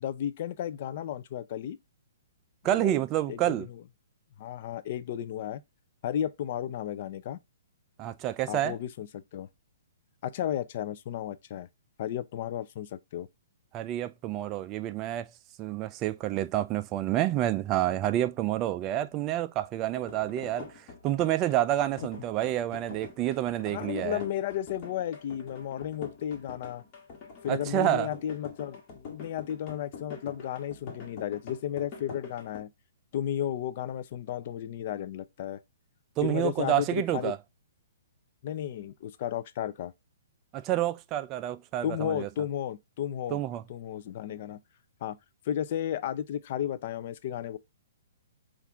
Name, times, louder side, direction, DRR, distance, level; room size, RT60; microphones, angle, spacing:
voice 1, 0.0-1.8 2.7-2.9 3.3-3.8 4.4-5.6 6.0-7.4 8.5-9.5 10.2-11.7 12.0-13.3 23.7-26.8 27.4-32.7 33.1-35.6 36.2-37.3 38.4-39.9 41.8-43.4 43.7-44.6 45.0-45.2 45.5-47.6, left 10 dB, 50° left, 0.4 m, -33 dB
voice 2, 2.6-3.7 8.0-8.8 13.7-15.3 15.6-24.2 27.5-28.1 36.2-37.4 40.5-42.3 43.3-43.6, right 13 dB, 25° right, 0.3 m, -28 dB
sound 1, 19.9-32.6, left 5 dB, 30° left, 1.4 m, -45 dB
5.8 x 2.5 x 3.5 m
hypercardioid pair, 150°, 0 cm